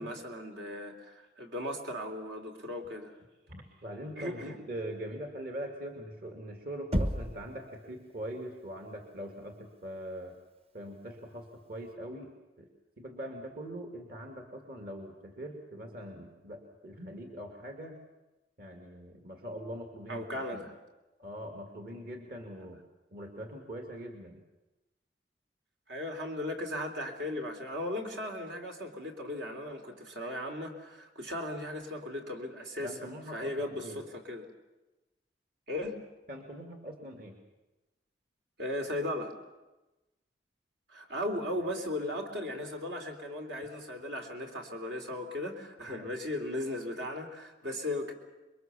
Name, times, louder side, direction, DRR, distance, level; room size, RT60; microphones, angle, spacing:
voice 1, 0.0-3.1 4.2-4.6 20.1-20.7 25.9-32.9 33.3-34.5 35.7-36.0 38.6-39.4 40.9-48.1, left 1 dB, 80° right, 3 dB, 3.4 m, -37 dB
voice 2, 3.5-10.4 10.7-12.7 13.0-18.0 18.6-20.6 21.2-22.8 23.1-24.4 32.8-34.0 36.3-37.4 45.9-46.1, equal, 55° right, 2 dB, 2.3 m, -42 dB
Knock, 6.9-7.6, equal, 35° right, 1.1 m, -30 dB
27.0 x 22.5 x 7.0 m, 1.1 s
head